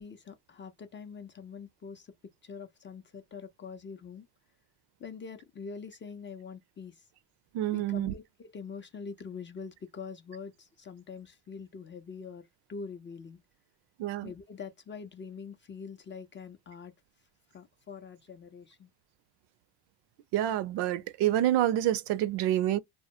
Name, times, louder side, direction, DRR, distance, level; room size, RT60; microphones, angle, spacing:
voice 1, 0.0-2.1 2.4-4.3 5.0-7.1 7.7-12.4 12.7-13.4 14.2-16.9 17.5-18.9, left 5 dB, 25° left, 0.4 m, -44 dB
voice 2, 7.5-8.1 14.0-14.3 20.3-22.8, right 13 dB, 65° right, 0.5 m, -27 dB
2.1 x 2.1 x 2.8 m
supercardioid pair, 95°, 46 cm